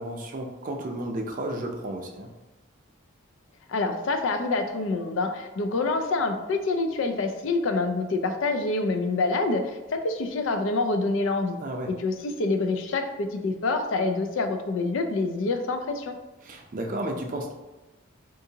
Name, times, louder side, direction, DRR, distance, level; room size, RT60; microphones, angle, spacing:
voice 1, 0.0-2.3 11.6-11.9 16.4-17.5, right 1 dB, 40° right, 2 dB, 0.4 m, -33 dB
voice 2, 3.7-11.6 11.9-16.1, left 3 dB, 65° left, 7 dB, 0.4 m, -26 dB
3.8 x 2.5 x 2.7 m, 1.1 s
head